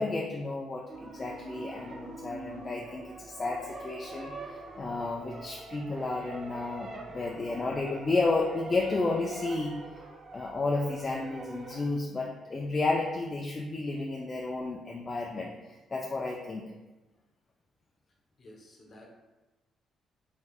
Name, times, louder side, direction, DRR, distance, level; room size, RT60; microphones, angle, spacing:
voice 1, 0.0-9.7 10.3-16.6, left 3 dB, 30° left, -1 dB, 0.3 m, -32 dB
sound 1, 0.9-11.9, right 3 dB, 45° right, 0.5 m, -44 dB
voice 2, 18.4-19.1, left 1 dB, 45° left, 0 dB, 0.8 m, -52 dB
3.5 x 3.2 x 2.3 m, 1.1 s
cardioid pair, 100°, 0 cm